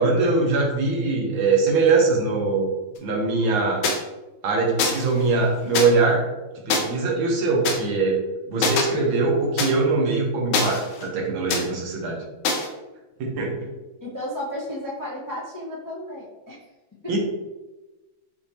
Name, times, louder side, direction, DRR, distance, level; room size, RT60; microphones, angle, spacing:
voice 1, 0.0-2.7 3.0-3.8 4.4-6.2 6.6-8.2 8.5-12.2 13.2-13.7 17.1-17.2, right 3 dB, 80° right, 0 dB, 1.8 m, -22 dB
sound 1, 3.8-4.0 4.8-5.1 5.7-5.9 6.7-6.8 7.6-7.8 8.6-8.8 9.6-9.7 10.5-11.1 11.5-11.6 12.4-12.7, left 4 dB, 85° left, 1.5 m, -23 dB
voice 2, 14.0-16.6 17.0-17.1, left 1 dB, 20° left, -7 dB, 0.5 m, -33 dB
6.6 x 2.7 x 2.8 m, 1.1 s
omnidirectional pair, 2.2 m